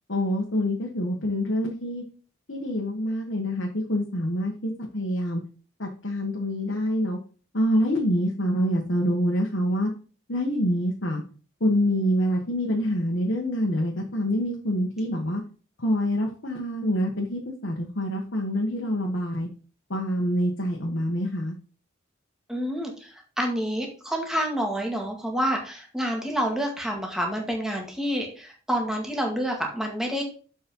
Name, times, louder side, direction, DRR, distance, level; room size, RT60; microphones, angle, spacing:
voice 1, 0.1-2.0 2.5-5.4 5.8-7.2 7.5-9.9 10.3-11.2 11.6-15.4 15.8-19.5 19.9-21.6, equal, 65° left, -1 dB, 1.6 m, -26 dB
voice 2, 22.5-30.2, equal, 5° right, 0 dB, 2.0 m, -28 dB
7.3 x 5.5 x 5.5 m, 0.38 s
head